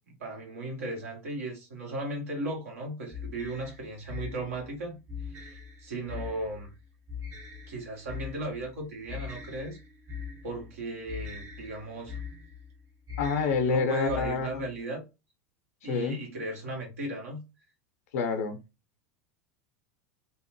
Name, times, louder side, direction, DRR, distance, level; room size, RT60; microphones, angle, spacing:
voice 1, 0.2-5.0 5.2-6.7 7.7-9.8 10.4-12.2 13.6-15.0 15.8-17.4, right 1 dB, 85° right, 1.5 m, -36 dB
sound 1, 3.1-14.8, left 6 dB, 40° right, 1.0 m, -42 dB
voice 2, 13.2-14.6 15.9-16.2 18.1-18.6, left 5 dB, 75° left, 0.8 m, -28 dB
3.1 x 2.0 x 3.0 m
hypercardioid pair, 95°, 8 cm